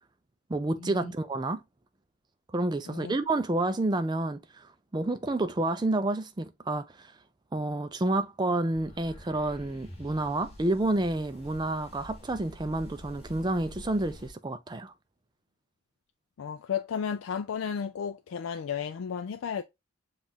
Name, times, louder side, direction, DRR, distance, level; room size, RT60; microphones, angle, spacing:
voice 1, 0.5-1.6 2.5-7.1 7.5-14.9, right 2 dB, 20° right, 0.4 m, -29 dB
sound 1, 8.7-14.3, equal, 25° left, 1.7 m, -47 dB
voice 2, 16.4-19.6, left 7 dB, 70° left, 0.3 m, -33 dB
7.2 x 2.5 x 2.8 m
head